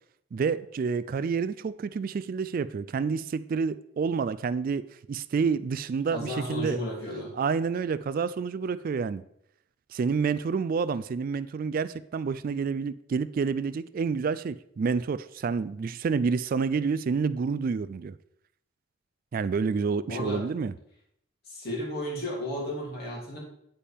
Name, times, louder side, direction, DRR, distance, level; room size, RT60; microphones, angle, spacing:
voice 1, 0.3-6.8 7.4-9.2 9.9-18.1 19.3-20.7, right 5 dB, 50° right, 0.3 m, -28 dB
voice 2, 6.1-7.3 20.1-20.4 21.5-23.4, left 1 dB, 55° left, 2.9 m, -33 dB
9.0 x 8.5 x 3.5 m
head